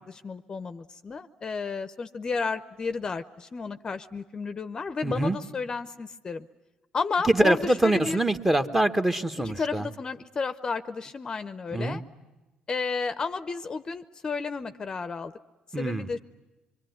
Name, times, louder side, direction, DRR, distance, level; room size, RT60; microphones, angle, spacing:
voice 1, 0.0-6.5 6.9-8.2 9.4-12.0 12.7-15.3 15.8-16.2, left 4 dB, 30° left, 11 dB, 0.8 m, -32 dB
voice 2, 5.0-5.4 7.3-9.9 11.7-12.0 15.7-16.1, right 1 dB, 10° right, 8 dB, 1.3 m, -24 dB
25.5 x 23.5 x 9.4 m, 1.1 s
cardioid pair, 120°, 2 cm